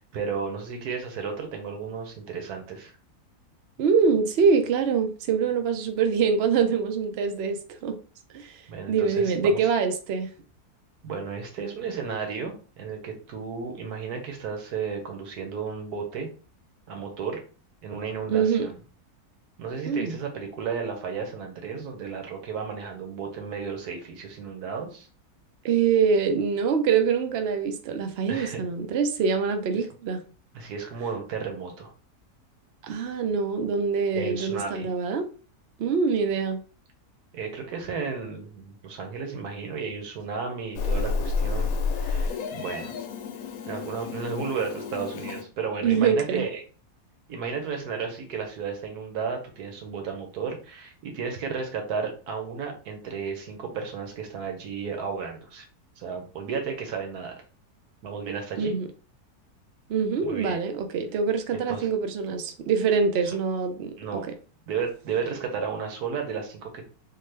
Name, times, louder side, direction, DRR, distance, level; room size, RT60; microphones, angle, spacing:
voice 1, 0.0-2.9 8.7-9.7 11.0-16.3 16.9-17.4 17.8-18.8 19.6-25.1 28.3-28.6 30.5-31.9 34.1-34.9 37.3-42.9 43.7-46.6 47.3-55.6 56.0-57.3 58.0-58.7 60.2-60.6 61.5-61.9 64.0-64.3 64.7-66.9, right 5 dB, 80° right, 1.4 m, -33 dB
voice 2, 3.8-8.0 8.3-8.6 8.9-10.3 18.3-18.7 19.9-20.2 25.6-30.2 32.8-35.3 35.8-36.6 45.8-46.4 58.6-58.9 59.9-64.2, right 5 dB, 65° right, 0.6 m, -24 dB
Meow, 40.7-45.4, left 4 dB, 70° left, 1.0 m, -30 dB
3.7 x 2.4 x 3.2 m
omnidirectional pair, 1.6 m